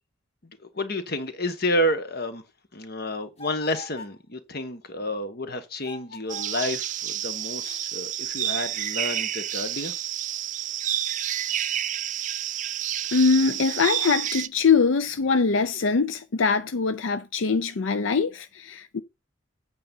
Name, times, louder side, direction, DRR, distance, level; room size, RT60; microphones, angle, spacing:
voice 1, 0.4-2.4 2.7-9.9, left 1 dB, 55° left, 1.4 m, -30 dB
sound 1, 3.4-4.2 5.8-6.8, left 2 dB, 35° left, 1.5 m, -42 dB
sound 2, 6.3-14.5, right 11 dB, 40° right, 0.5 m, -29 dB
voice 2, 13.1-19.0, left 5 dB, 85° left, 0.6 m, -23 dB
8.7 x 5.2 x 5.4 m
head